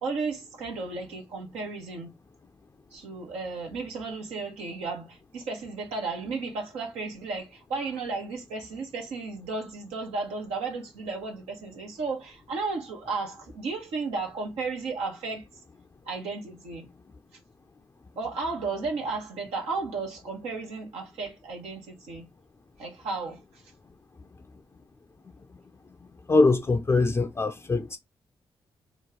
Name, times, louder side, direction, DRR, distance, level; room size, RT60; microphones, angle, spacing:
voice 1, 0.0-2.1 2.9-15.5 16.0-16.9 18.2-22.3 22.8-23.6, right 4 dB, 90° right, 0.9 m, -34 dB
voice 2, 26.3-28.0, left 3 dB, 25° left, 0.4 m, -22 dB
3.0 x 2.2 x 3.5 m
supercardioid pair, 55°, 10 cm